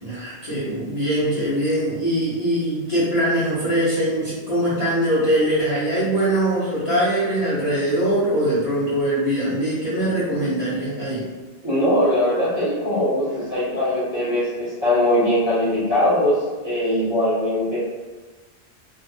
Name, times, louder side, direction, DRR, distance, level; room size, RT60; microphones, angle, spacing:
voice 1, 0.0-11.2, right 1 dB, 40° left, -10 dB, 0.8 m, -22 dB
voice 2, 11.6-17.8, left 1 dB, 25° right, -11 dB, 1.2 m, -21 dB
3.3 x 2.6 x 2.5 m, 1.3 s
omnidirectional pair, 1.2 m